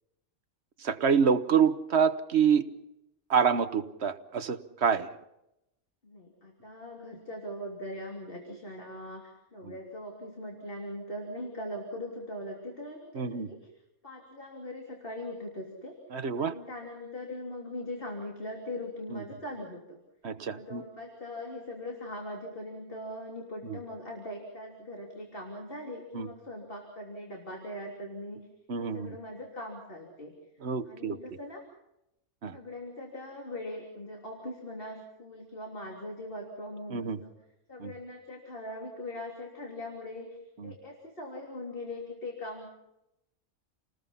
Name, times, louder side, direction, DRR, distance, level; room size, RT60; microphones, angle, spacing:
voice 1, 0.8-2.6 3.3-5.1 13.1-13.5 16.1-16.5 19.1-19.2 20.2-20.8 26.1-26.3 28.7-29.1 30.6-31.2 32.4-32.6 36.9-37.2 37.8-37.9 40.6-40.7, right 6 dB, 50° right, 10 dB, 1.3 m, -27 dB
voice 2, 6.0-13.7 14.0-20.0 20.4-28.5 28.8-30.3 30.9-31.6 32.5-37.4 37.7-42.7, left 1 dB, 40° left, 0 dB, 3.4 m, -41 dB
29.0 x 19.5 x 5.7 m, 0.86 s
omnidirectional pair, 1.5 m